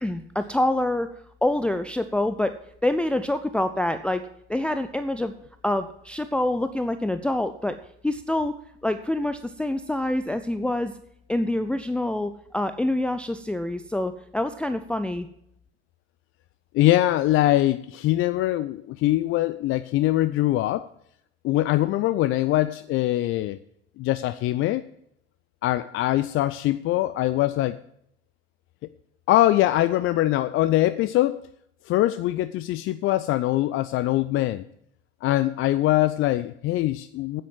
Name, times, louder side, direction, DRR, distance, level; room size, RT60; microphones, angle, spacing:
voice 1, 0.0-1.1 1.4-2.5 2.8-4.2 4.5-5.3 5.6-7.8 8.0-8.6 8.8-10.9 11.3-15.3, left 1 dB, 5° left, 9 dB, 0.6 m, -26 dB
voice 2, 16.7-20.9 21.4-23.6 24.0-24.8 25.6-27.8 29.3-31.5 31.9-34.6 35.2-37.4, left 15 dB, 45° left, 14 dB, 0.5 m, -23 dB
9.3 x 8.4 x 7.6 m, 0.73 s
figure-of-eight pair, 60°, 31 cm